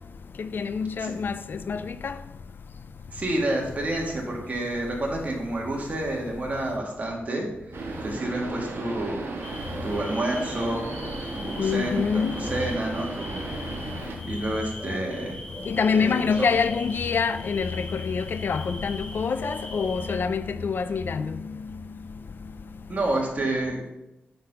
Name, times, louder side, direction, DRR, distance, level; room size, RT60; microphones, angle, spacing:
voice 1, 0.4-1.3 1.7-2.1 11.6-12.3 15.7-21.3, left 5 dB, 55° left, 0.3 m, -26 dB
voice 2, 3.1-9.2 9.8-10.9 11.3-12.0 12.3-13.5 14.0-15.4 15.9-16.5 22.9-23.9, right 1 dB, 35° right, 1.9 m, -29 dB
sound 1, 7.7-14.2, right 3 dB, 70° right, 1.4 m, -35 dB
sound 2, 9.4-20.2, left 1 dB, 20° left, 2.2 m, -41 dB
8.9 x 3.9 x 5.5 m
wide cardioid pair, 135°, 4 cm